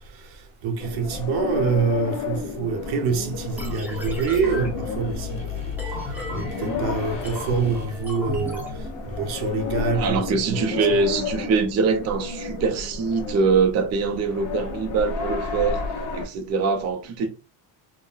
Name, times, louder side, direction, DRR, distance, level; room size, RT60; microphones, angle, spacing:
voice 1, 0.0-10.2 10.5-11.0, right 5 dB, 85° right, 0.9 m, -26 dB
sound 1, 0.8-16.3, left 4 dB, 55° left, 0.7 m, -32 dB
sound 2, 2.9-8.0, left 9 dB, 15° left, 1.5 m, -37 dB
sound 3, 3.6-9.3, left 1 dB, 5° right, 0.7 m, -35 dB
voice 2, 9.9-15.8 16.1-17.3, right 5 dB, 40° right, 0.5 m, -23 dB
3.8 x 2.1 x 2.4 m
cardioid pair, 150°, 37 cm